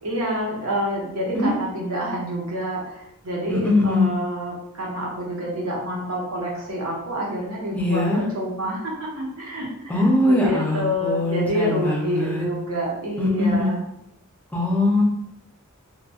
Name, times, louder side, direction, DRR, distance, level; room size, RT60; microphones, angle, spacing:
voice 1, 0.0-13.8, equal, 85° right, -2 dB, 0.9 m, -28 dB
voice 2, 3.5-4.1 7.8-8.2 9.9-12.5 13.2-13.7 14.5-15.0, left 2 dB, 5° left, -2 dB, 0.5 m, -21 dB
2.8 x 2.2 x 2.7 m, 0.79 s
head